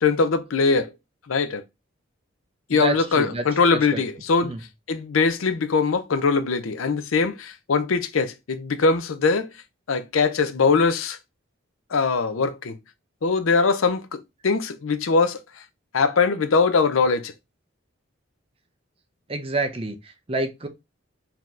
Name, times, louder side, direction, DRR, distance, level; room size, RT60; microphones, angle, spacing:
voice 1, 0.0-0.9 1.3-1.6 2.7-4.5 4.9-9.5 9.9-11.2 11.9-12.8 13.2-15.4 15.9-17.3, left 4 dB, 75° left, 0.5 m, -21 dB
voice 2, 2.7-3.4 3.7-4.0 4.4-4.6 19.3-20.7, right 3 dB, 25° right, 0.6 m, -28 dB
4.1 x 2.8 x 3.1 m
head